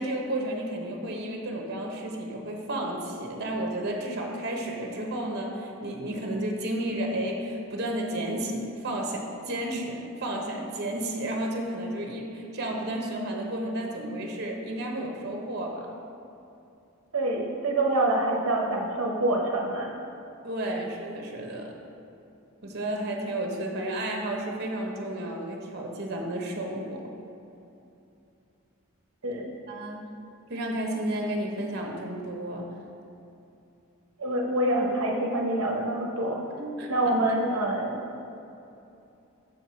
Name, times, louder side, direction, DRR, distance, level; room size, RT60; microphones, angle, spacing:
voice 1, 0.0-15.9 20.4-21.8 22.6-27.0 29.7-30.0 30.5-32.7 36.6-36.9, right 1 dB, 50° right, 1 dB, 0.9 m, -32 dB
voice 2, 17.1-19.9 29.2-29.5 34.2-36.4 36.9-38.0, right 1 dB, 75° right, -1 dB, 0.8 m, -26 dB
6.4 x 4.6 x 5.6 m, 2.8 s
head